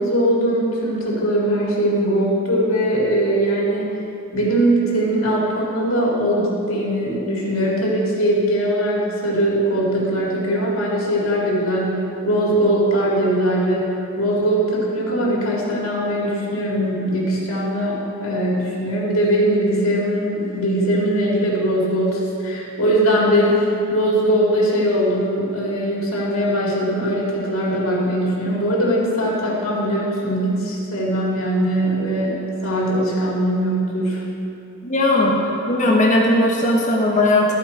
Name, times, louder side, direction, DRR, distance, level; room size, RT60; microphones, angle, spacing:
voice 1, 0.0-4.0 4.3-34.2, right 1 dB, 75° left, -4 dB, 2.2 m, -20 dB
voice 2, 34.8-35.4 35.7-37.5, left 1 dB, 35° left, -3 dB, 1.1 m, -17 dB
13.5 x 5.1 x 4.2 m, 2.7 s
head